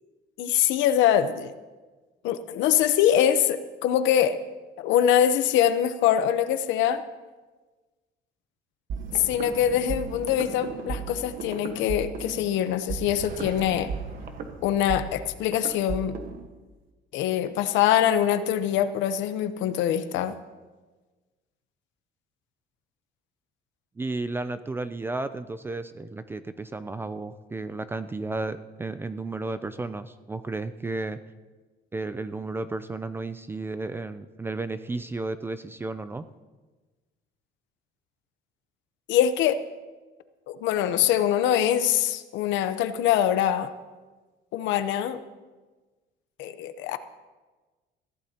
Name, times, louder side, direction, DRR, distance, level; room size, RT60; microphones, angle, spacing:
voice 1, 0.4-1.5 2.2-4.4 4.8-7.0 9.1-13.9 14.6-16.2 17.1-20.3 39.1-39.6 40.5-43.7 44.5-45.2 46.4-47.0, left 10 dB, 75° left, 11 dB, 0.9 m, -23 dB
sound 1, 8.9-16.5, right 5 dB, 45° right, 1.3 m, -36 dB
voice 2, 24.0-31.2 31.9-36.3, right 3 dB, 10° right, 11 dB, 0.3 m, -33 dB
22.0 x 15.5 x 2.9 m, 1.3 s
cardioid pair, 175°, 19 cm